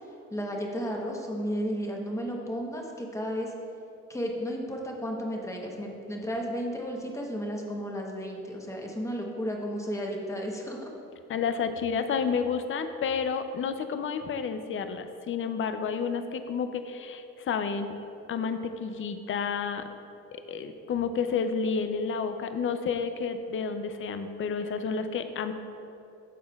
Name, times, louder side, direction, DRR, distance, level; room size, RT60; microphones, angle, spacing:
voice 1, 0.3-3.5 4.1-10.9, equal, 10° left, 0 dB, 1.0 m, -33 dB
voice 2, 11.3-17.9 18.3-19.9 20.3-25.5, left 6 dB, 45° left, 9 dB, 0.5 m, -30 dB
12.5 x 4.3 x 2.4 m, 2.7 s
cardioid pair, 90°, 30 cm